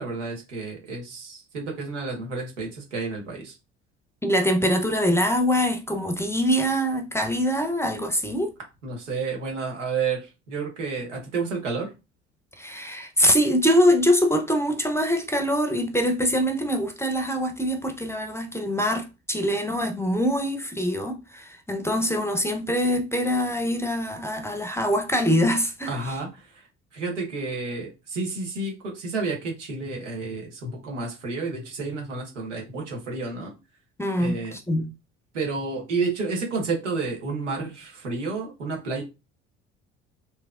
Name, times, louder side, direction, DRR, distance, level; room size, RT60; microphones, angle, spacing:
voice 1, 0.0-3.5 8.8-11.9 25.9-26.6 26.9-33.5 34.2-34.6 35.3-39.0, right 4 dB, 90° right, 1.2 m, -30 dB
voice 2, 4.2-8.5 12.6-26.0 34.0-34.9, equal, 5° left, 0.7 m, -24 dB
3.3 x 2.9 x 2.4 m
hypercardioid pair, 60°, 35 cm